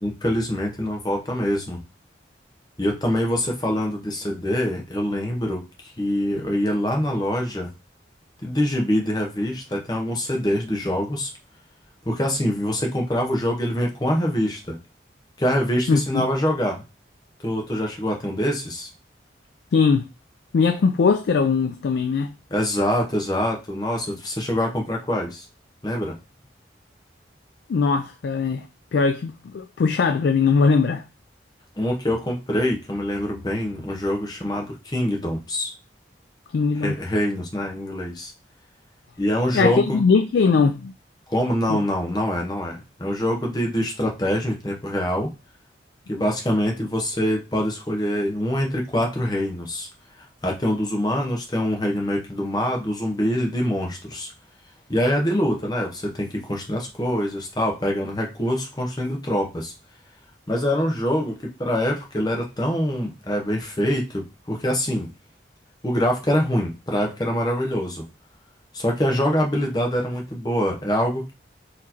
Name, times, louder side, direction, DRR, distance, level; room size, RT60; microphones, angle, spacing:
voice 1, 0.0-1.8 2.8-5.6 6.0-7.7 8.4-11.3 12.1-14.8 15.4-16.8 17.4-18.9 22.5-25.5 25.8-26.1 31.8-35.7 36.8-38.3 39.2-40.0 41.3-45.3 46.1-49.9 50.4-54.3 54.9-59.7 60.5-65.1 65.8-68.0 68.7-71.3, equal, 20° left, 0.8 m, -24 dB
voice 2, 15.9-16.2 19.7-20.0 20.5-22.3 27.7-28.6 28.9-31.0 36.5-37.0 39.5-40.9 41.7-41.8, left 5 dB, 70° left, 0.3 m, -20 dB
4.1 x 3.0 x 2.7 m
head